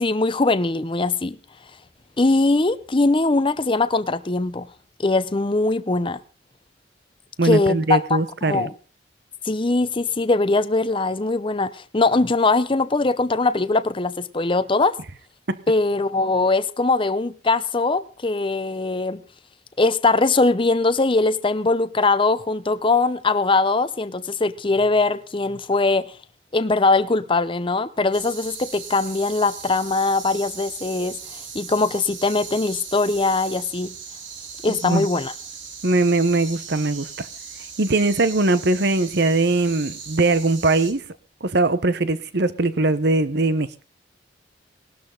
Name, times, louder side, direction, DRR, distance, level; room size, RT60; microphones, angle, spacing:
voice 1, 0.0-1.4 2.2-4.7 5.0-6.2 7.4-8.7 9.5-15.0 15.7-19.2 19.8-26.1 26.5-34.0 34.6-35.3, left 3 dB, 25° left, 0.7 m, -21 dB
voice 2, 7.4-8.7 15.5-15.6 34.7-35.1 35.8-37.3 37.8-41.0 41.4-43.7, right 2 dB, 60° right, 1.1 m, -21 dB
sound 1, 28.1-40.9, right 6 dB, 80° right, 3.3 m, -38 dB
18.5 x 12.5 x 3.9 m
head